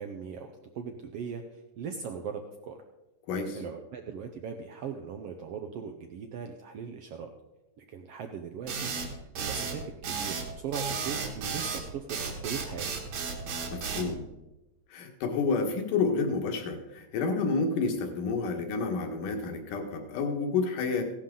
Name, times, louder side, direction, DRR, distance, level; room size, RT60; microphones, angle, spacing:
voice 1, 0.0-2.8 3.5-7.3 7.8-13.0, right 6 dB, 85° right, 5 dB, 1.3 m, -39 dB
voice 2, 3.3-3.6 13.7-14.3 14.9-21.0, left 4 dB, 75° left, 4 dB, 3.0 m, -29 dB
sound 1, 8.7-14.1, right 5 dB, 60° right, 2.5 m, -33 dB
16.0 x 11.5 x 3.8 m, 0.98 s
omnidirectional pair, 3.8 m